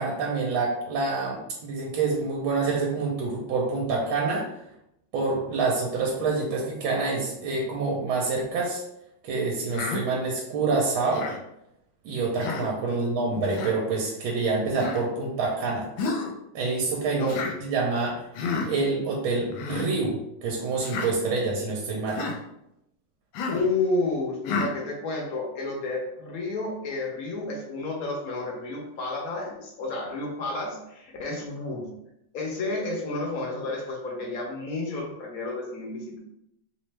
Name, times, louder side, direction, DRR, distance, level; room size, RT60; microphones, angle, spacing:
voice 1, 0.0-4.5 5.1-8.8 9.2-11.3 12.0-15.9 16.5-17.3 17.6-18.2 18.7-22.2, right 3 dB, 75° right, -2 dB, 1.4 m, -27 dB
Human voice, 9.7-10.0 11.1-11.4 12.4-12.7 13.5-13.7 14.8-15.0 16.0-16.3 17.3-17.6 18.4-18.7 19.5-19.9 20.8-21.1 22.1-22.4 23.3-23.7 24.5-24.7, left 4 dB, 80° left, 1.4 m, -30 dB
voice 2, 12.8-13.5 17.1-17.3 23.5-31.9 32.3-36.2, left 2 dB, 60° left, -1 dB, 1.0 m, -31 dB
3.4 x 3.1 x 3.2 m, 0.82 s
omnidirectional pair, 2.3 m